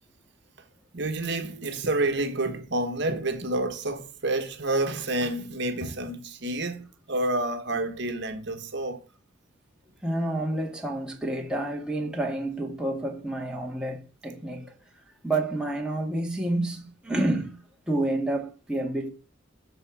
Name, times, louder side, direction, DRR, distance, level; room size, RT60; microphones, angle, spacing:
voice 1, 0.9-9.0, right 2 dB, 60° right, 1.4 m, -29 dB
voice 2, 10.0-14.7 15.2-19.1, right 1 dB, 5° right, 1.9 m, -29 dB
13.0 x 4.4 x 6.2 m
head